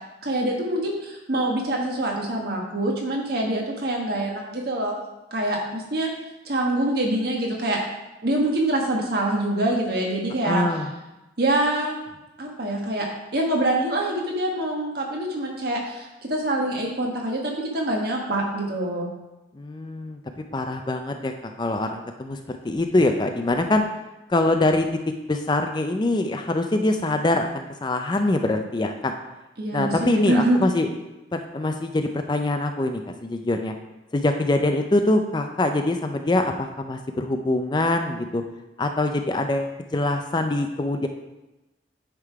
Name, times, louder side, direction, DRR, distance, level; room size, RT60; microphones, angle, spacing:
voice 1, 0.2-5.0 5.3-6.1 6.4-7.8 8.2-10.6 11.4-12.0 12.4-13.1 13.3-19.1 29.6-30.6, right 1 dB, 55° right, -1 dB, 1.4 m, -25 dB
voice 2, 10.4-10.9 19.5-23.8 24.3-24.9 25.3-29.1 29.7-30.9 31.3-33.7 34.1-38.4 38.8-41.1, left 2 dB, 25° left, 5 dB, 0.4 m, -24 dB
9.7 x 3.7 x 4.7 m, 1.0 s
head